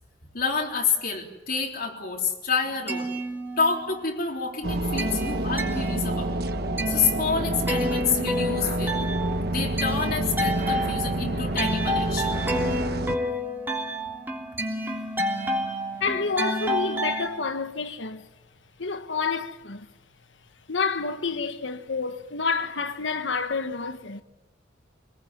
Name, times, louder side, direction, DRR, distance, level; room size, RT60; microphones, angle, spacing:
voice 1, 0.3-3.1 3.6-6.4 6.9-9.0 9.5-12.4, left 5 dB, 50° left, 3.6 m, -28 dB
sound 1, 2.6-4.1 4.4-17.3, equal, 10° right, 3.4 m, -30 dB
sound 2, 4.6-13.2, right 1 dB, 55° right, 1.4 m, -28 dB
voice 2, 16.0-18.3 18.8-19.9 20.7-24.2, left 4 dB, 80° left, 1.6 m, -29 dB
27.0 x 20.5 x 9.6 m
head